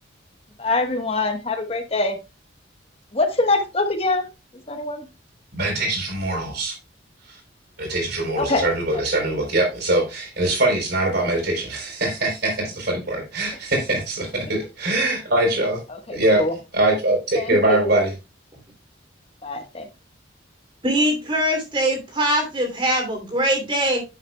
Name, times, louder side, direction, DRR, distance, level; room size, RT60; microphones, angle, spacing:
voice 1, 0.6-2.2 3.1-4.3 4.7-5.0 8.4-8.6 16.1-16.5 17.4-18.0 19.4-19.8, left 2 dB, 30° left, 6 dB, 1.2 m, -24 dB
voice 2, 5.5-6.7 7.3-7.4 7.8-15.8 16.1-16.5 16.7-18.1, right 2 dB, 55° right, 2 dB, 3.9 m, -22 dB
voice 3, 20.8-24.0, equal, 25° right, 3 dB, 2.8 m, -22 dB
10.0 x 7.4 x 2.2 m, 0.27 s
head